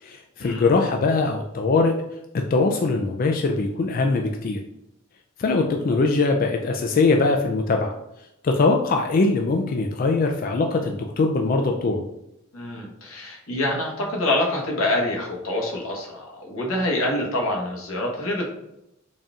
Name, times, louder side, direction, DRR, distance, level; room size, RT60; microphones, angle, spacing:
voice 1, 0.0-1.9 2.5-4.6 5.4-7.9 8.4-12.0, left 3 dB, 40° left, 3 dB, 0.3 m, -21 dB
voice 2, 12.5-18.5, left 1 dB, 90° left, -1 dB, 1.1 m, -26 dB
4.0 x 2.4 x 3.7 m, 0.82 s
head